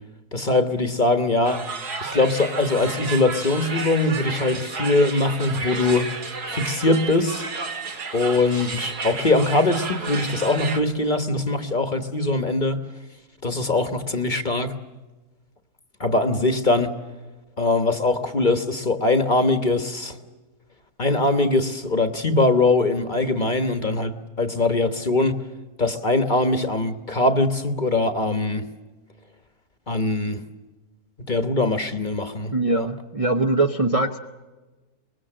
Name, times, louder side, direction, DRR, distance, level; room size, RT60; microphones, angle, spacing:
voice 1, 0.3-1.6 2.0-6.1 6.5-7.4 8.1-12.8 13.4-14.7 16.0-16.9 17.6-20.2 21.0-25.4 25.8-28.6 29.9-30.4 31.3-32.9, left 2 dB, 30° left, 8 dB, 1.3 m, -22 dB
sound 1, 1.4-10.8, right 4 dB, 75° right, 2.4 m, -32 dB
voice 2, 32.5-34.2, right 2 dB, 30° right, 4 dB, 0.7 m, -22 dB
25.0 x 21.0 x 7.6 m, 1.2 s
omnidirectional pair, 1.7 m